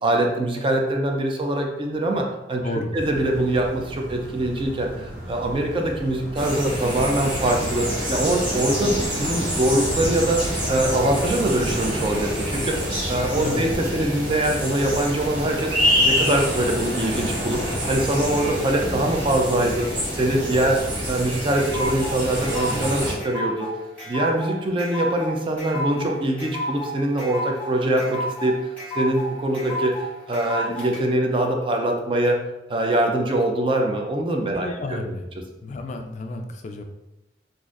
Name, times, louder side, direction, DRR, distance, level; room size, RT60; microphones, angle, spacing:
voice 1, 0.0-2.6 2.9-12.8 13.1-15.7 16.0-17.6 17.9-20.8 21.1-23.7 24.1-28.5 28.9-32.4 32.7-35.0, right 1 dB, 30° right, 2 dB, 0.4 m, -23 dB
voice 2, 2.6-3.0 13.4-13.6 20.5-20.8 34.5-35.3 35.6-36.8, left 2 dB, 40° left, 5 dB, 0.3 m, -31 dB
sound 1, 2.9-13.5, right 1 dB, 50° right, 0.8 m, -36 dB
sound 2, 6.3-23.1, equal, 80° right, 1.2 m, -26 dB
sound 3, 20.9-31.0, left 1 dB, 10° left, 1.0 m, -31 dB
4.0 x 2.5 x 2.4 m, 0.94 s
head